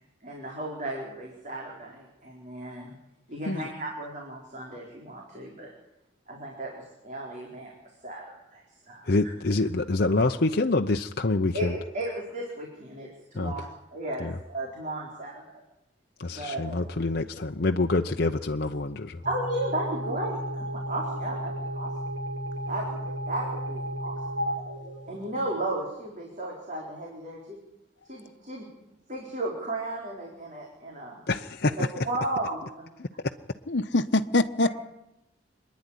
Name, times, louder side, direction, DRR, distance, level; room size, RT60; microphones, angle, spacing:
voice 1, 0.2-2.9 3.3-5.7 6.3-7.7 8.0-9.1 11.5-13.1 13.3-15.5 16.3-16.8 19.2-21.9 22.7-24.2 24.4-24.6 25.1-27.6 28.1-28.7 29.1-31.2 31.7-32.9 34.6-34.7, right 1 dB, 40° right, -1 dB, 4.2 m, -34 dB
voice 2, 9.1-11.7 13.3-13.5 14.2-14.3 16.2-19.2 31.3-31.9 33.0-33.1, left 2 dB, 55° left, 4 dB, 0.8 m, -26 dB
sound 1, 19.2-25.7, equal, 80° right, 7.9 m, -34 dB
voice 3, 33.7-34.7, left 2 dB, 70° left, 10 dB, 1.1 m, -24 dB
26.5 x 10.5 x 10.0 m, 0.90 s
head